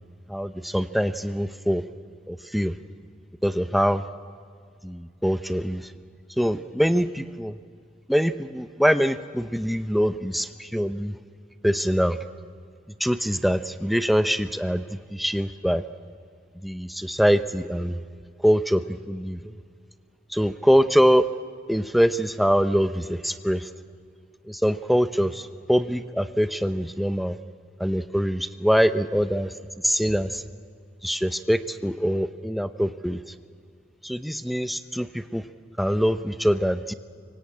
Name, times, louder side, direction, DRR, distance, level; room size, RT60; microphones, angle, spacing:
voice 1, 0.3-1.8 2.3-2.8 3.4-4.0 4.8-5.9 6.4-7.6 8.1-11.2 11.6-12.2 13.0-15.8 16.6-18.0 18.4-19.5 20.3-21.3 21.7-23.7 24.5-27.4 27.8-29.5 29.8-30.4 31.0-33.2 34.0-35.4 35.8-36.9, equal, ahead, 10 dB, 0.6 m, -23 dB
24.0 x 24.0 x 8.6 m, 2.2 s
head